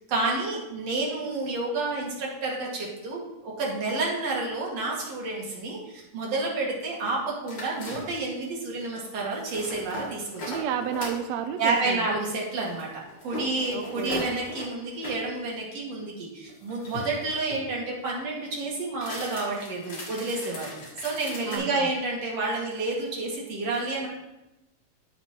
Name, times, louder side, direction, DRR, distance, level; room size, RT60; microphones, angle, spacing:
voice 1, 0.1-10.6 11.6-12.9 13.2-24.1, right 3 dB, 60° right, -3 dB, 2.9 m, -30 dB
sound 1, 7.5-8.4 9.3-11.3 12.6-15.2 16.5-17.7 18.9-21.6, left 2 dB, 45° left, 1.9 m, -38 dB
voice 2, 10.5-12.1 13.7-14.3 21.5-21.9, right 9 dB, 80° right, 8 dB, 1.5 m, -31 dB
14.0 x 5.2 x 2.9 m, 0.94 s
omnidirectional pair, 3.4 m